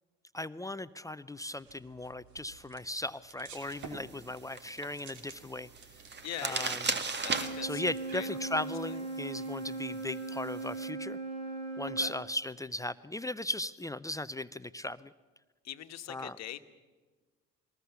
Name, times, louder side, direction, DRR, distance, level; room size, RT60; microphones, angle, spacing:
voice 1, 0.3-5.7 6.4-6.8 7.6-11.2 11.8-15.1 16.1-16.4, left 1 dB, 10° left, 14 dB, 0.6 m, -37 dB
sound 1, 1.5-8.3, right 5 dB, 65° right, 2.6 m, -53 dB
sound 2, 3.5-10.9, right 4 dB, 35° right, 1.8 m, -39 dB
voice 2, 6.2-6.8 7.2-7.8 8.1-8.3 8.6-8.9 12.0-12.1 15.6-16.6, left 12 dB, 55° left, 9 dB, 1.4 m, -42 dB
Wind instrument woodwind instrument, 7.2-12.2, right 3 dB, 90° right, 7.3 m, -39 dB
22.0 x 19.5 x 7.0 m, 1.3 s
hypercardioid pair, 65°, 31 cm